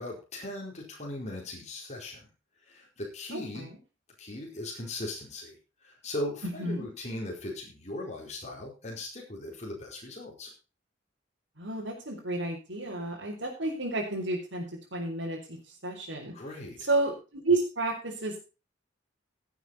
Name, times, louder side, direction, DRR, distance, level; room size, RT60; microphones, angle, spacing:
voice 1, 0.0-2.3 2.6-3.7 4.2-5.5 5.8-10.5 16.3-16.9, left 1 dB, 35° left, -2 dB, 4.5 m, -38 dB
voice 2, 3.3-3.8 6.4-6.9 11.6-14.7 14.9-15.6 15.8-16.3 16.8-18.4, right 2 dB, 75° right, -5 dB, 4.1 m, -31 dB
16.5 x 8.1 x 4.2 m, 0.32 s
head